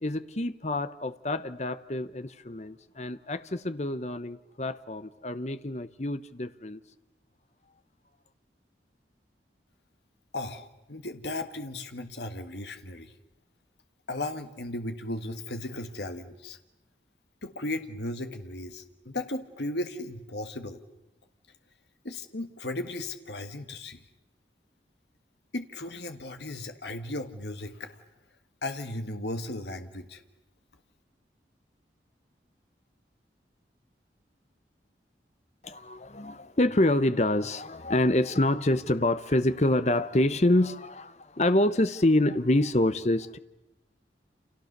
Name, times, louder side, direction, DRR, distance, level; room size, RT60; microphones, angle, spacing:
voice 1, 0.0-6.8 35.6-43.4, left 1 dB, 40° left, 0.9 m, -26 dB
voice 2, 10.3-13.1 14.1-16.6 17.4-20.8 22.0-24.0 25.5-28.0 28.6-30.2, left 1 dB, 75° left, 1.6 m, -36 dB
29.0 x 28.5 x 6.7 m
head